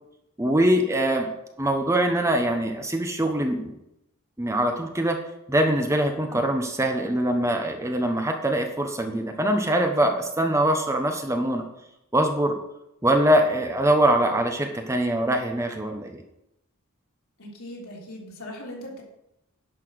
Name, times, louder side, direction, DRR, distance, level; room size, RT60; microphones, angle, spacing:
voice 1, 0.4-1.3 1.6-3.7 4.4-5.2 5.5-11.6 12.1-12.5 13.0-16.2, right 1 dB, 15° right, 4 dB, 1.0 m, -23 dB
voice 2, 17.4-19.0, left 1 dB, 70° left, -2 dB, 3.4 m, -39 dB
11.0 x 5.8 x 6.4 m, 0.84 s
head